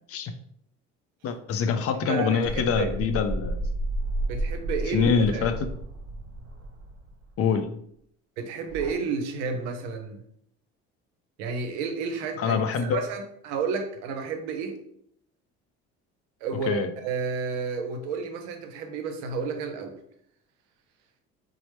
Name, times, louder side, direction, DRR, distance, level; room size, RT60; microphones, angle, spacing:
voice 1, 1.2-3.6 4.9-5.5 7.4-7.7 12.4-13.0 16.7-16.9, left 6 dB, 45° left, 8 dB, 0.4 m, -25 dB
voice 2, 2.1-2.9 4.3-5.5 8.4-10.2 11.4-14.8 16.4-20.0, right 5 dB, 85° right, 5 dB, 0.6 m, -31 dB
sound 1, 2.4-7.3 8.7-8.9, right 1 dB, 45° right, 0.7 m, -32 dB
3.0 x 2.0 x 3.1 m, 0.69 s
supercardioid pair, 80°, 34 cm